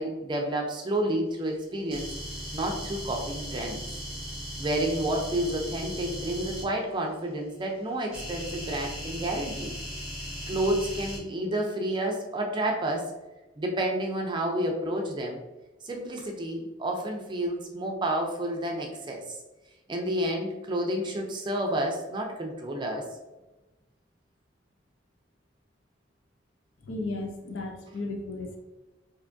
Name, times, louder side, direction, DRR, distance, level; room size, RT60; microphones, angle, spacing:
voice 1, 0.0-2.1 2.5-3.8 4.6-9.7 10.5-13.1 13.6-15.4 15.8-19.2 19.9-23.1, right 1 dB, 25° right, 1 dB, 0.4 m, -30 dB
sound 1, 1.9-6.6 8.1-11.2, equal, 5° right, 1.0 m, -37 dB
voice 2, 26.8-28.6, left 2 dB, 75° left, 3 dB, 0.5 m, -34 dB
3.4 x 2.7 x 2.5 m, 1.1 s
head